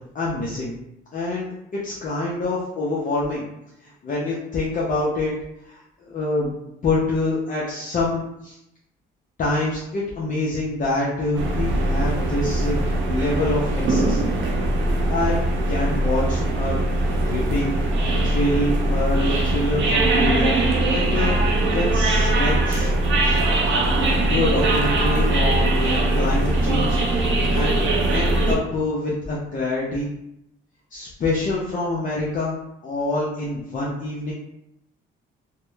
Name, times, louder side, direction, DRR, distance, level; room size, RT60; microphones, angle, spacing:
voice 1, 0.1-0.8 1.1-3.5 3.8-5.3 5.6-6.5 6.8-8.6 9.4-14.2 15.1-15.4 15.7-17.7 18.2-21.4 21.7-22.9 23.2-23.4 24.3-27.0 27.5-27.8 28.1-30.1 30.9-32.5 32.8-34.3, left 2 dB, 40° left, -6 dB, 0.5 m, -26 dB
sound 1, 11.4-28.6, right 1 dB, 75° right, 0.5 m, -21 dB
2.7 x 2.0 x 2.2 m, 0.83 s
cardioid pair, 90°, 20 cm